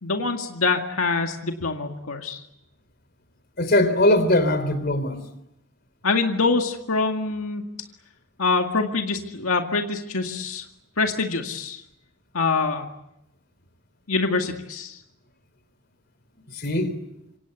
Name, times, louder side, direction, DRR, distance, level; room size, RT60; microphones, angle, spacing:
voice 1, 0.0-2.4 6.0-7.6 8.4-10.7 11.0-11.8 12.3-12.9 14.1-15.0, left 4 dB, 90° left, 2.1 m, -25 dB
voice 2, 3.6-5.2 16.5-16.9, left 1 dB, 50° left, 3.8 m, -20 dB
26.5 x 25.0 x 8.3 m
head